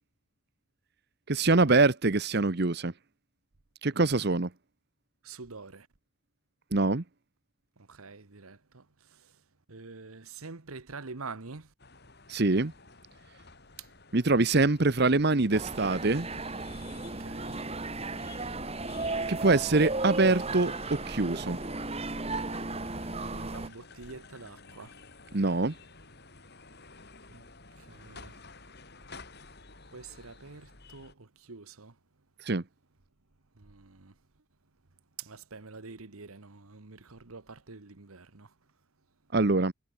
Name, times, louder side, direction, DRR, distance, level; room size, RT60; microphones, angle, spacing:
voice 1, 1.3-2.9 3.8-4.5 6.7-7.0 12.3-12.7 14.1-16.3 19.3-21.6 25.3-25.7 32.4-32.6 39.3-39.7, right 3 dB, 50° right, 1.0 m, -24 dB
voice 2, 5.2-5.9 7.8-9.4 9.7-11.7 13.8-13.9 17.0-17.6 23.1-25.0 27.3-27.4 27.8-28.4 29.9-32.0 33.6-34.1 35.2-38.5, right 4 dB, 85° right, 1.4 m, -46 dB
sound 1, 11.8-31.1, left 3 dB, 50° left, 4.3 m, -53 dB
sound 2, 15.5-23.7, right 2 dB, 30° right, 1.8 m, -35 dB
head